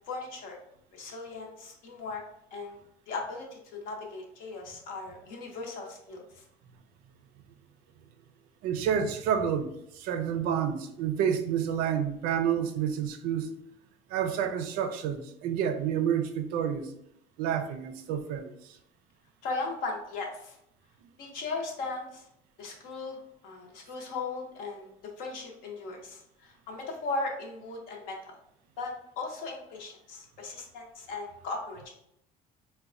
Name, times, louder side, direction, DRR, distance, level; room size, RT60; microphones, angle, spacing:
voice 1, 0.1-0.6 0.9-2.2 2.5-2.8 3.1-6.4 19.4-20.6 21.2-22.3 22.6-24.9 25.2-28.3 28.8-31.9, left 3 dB, 65° left, 0 dB, 0.7 m, -37 dB
voice 2, 8.6-13.5 14.1-16.9 17.4-18.8, right 8 dB, 75° right, 8 dB, 0.4 m, -29 dB
4.0 x 2.1 x 2.4 m, 0.77 s
cardioid pair, 160°, 15 cm